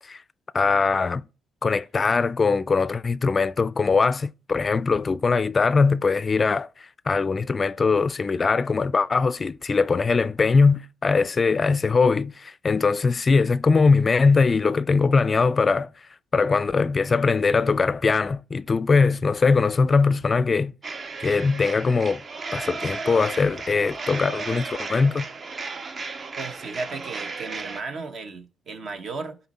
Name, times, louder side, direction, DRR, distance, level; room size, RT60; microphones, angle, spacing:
voice 1, 0.5-1.2 1.6-6.7 7.1-15.9 16.3-20.7 21.2-22.2 22.5-25.3, left 4 dB, 35° left, 0.4 m, -21 dB
sound 1, 20.8-27.8, right 4 dB, 40° right, 0.7 m, -34 dB
voice 2, 26.4-29.4, right 4 dB, 60° right, 1.3 m, -35 dB
12.0 x 4.3 x 4.3 m
cardioid pair, 90°, 0 cm